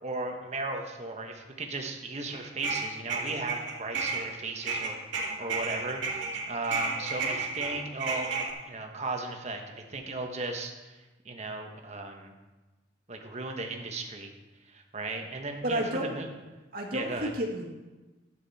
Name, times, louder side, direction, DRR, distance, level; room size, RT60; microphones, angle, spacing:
voice 1, 0.0-5.0 5.4-12.3 13.1-14.3 14.7-16.3 16.9-17.3, right 2 dB, 35° right, 3 dB, 1.3 m, -36 dB
sound 1, 2.3-4.3 4.6-8.5, right 4 dB, 85° right, 2.1 m, -32 dB
voice 2, 15.6-16.1 16.7-17.6, right 1 dB, 50° right, 0 dB, 2.0 m, -31 dB
12.0 x 9.2 x 4.3 m, 1.2 s
head